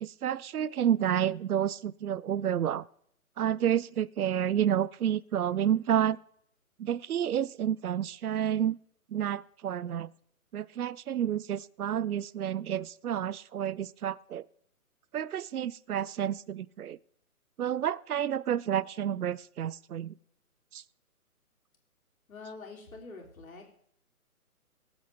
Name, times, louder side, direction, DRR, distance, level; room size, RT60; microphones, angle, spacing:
voice 1, 0.0-2.9 3.4-6.2 6.8-8.8 9.1-10.1 10.5-14.5 15.1-17.0 17.6-20.1 20.7-20.8, right 10 dB, 75° right, 24 dB, 0.5 m, -30 dB
voice 2, 22.3-23.8, left 3 dB, 65° left, 0 dB, 3.4 m, -46 dB
22.5 x 8.0 x 3.4 m, 0.69 s
figure-of-eight pair, 140°, 44 cm